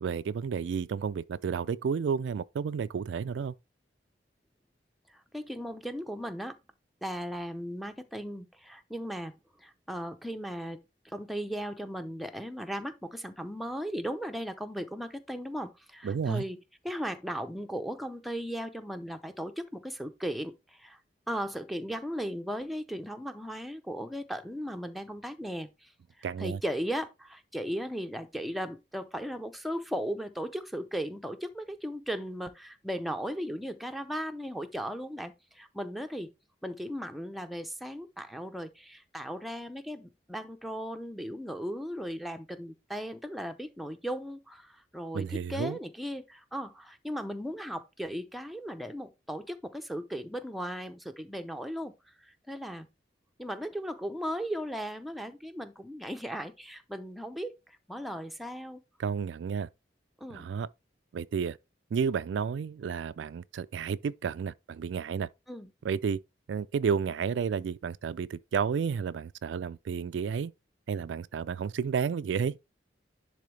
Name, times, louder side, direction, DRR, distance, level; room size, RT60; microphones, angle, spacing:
voice 1, 0.0-3.5 16.0-16.4 26.2-26.6 45.1-45.8 59.0-59.7 60.3-60.7 61.1-61.6 61.9-65.3 65.8-66.2 66.5-70.5 70.9-72.6, right 6 dB, 90° right, 0.3 m, -31 dB
voice 2, 5.1-6.6 7.0-16.6 16.8-21.0 21.3-25.9 26.2-36.3 36.6-51.9 52.2-52.9 53.4-58.8 60.2-60.5 65.5-65.7, equal, ahead, 0.6 m, -37 dB
10.5 x 3.5 x 3.2 m
head